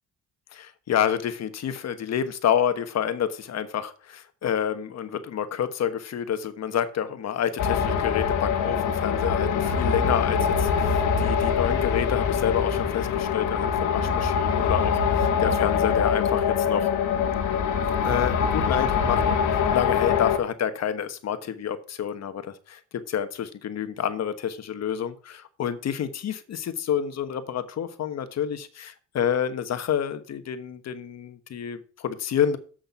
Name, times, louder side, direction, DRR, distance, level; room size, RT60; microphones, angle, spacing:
voice 1, 0.5-16.9 18.0-32.6, left 9 dB, 60° left, 10 dB, 1.2 m, -28 dB
sound 1, 7.6-20.4, left 6 dB, 85° left, 1.5 m, -24 dB
7.8 x 6.5 x 5.8 m, 0.40 s
cardioid pair, 90°, 30 cm